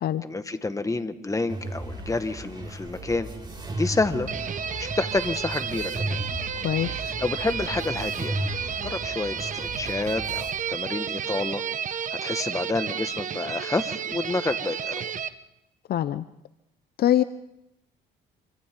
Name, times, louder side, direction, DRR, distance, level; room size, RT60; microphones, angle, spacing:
voice 1, 0.2-3.3 3.7-4.3 4.8-6.2 7.2-8.4 8.8-11.6 12.2-15.1, left 3 dB, 20° left, 9 dB, 1.7 m, -29 dB
sound 1, 1.5-10.5, right 1 dB, 25° right, 6.3 m, -35 dB
sound 2, 4.3-15.3, right 8 dB, 45° right, 1.1 m, -32 dB
voice 2, 6.6-7.1 15.9-16.3 17.0-17.2, left 12 dB, 60° left, 14 dB, 0.7 m, -24 dB
27.0 x 25.0 x 3.8 m, 0.86 s
supercardioid pair, 80°, 18 cm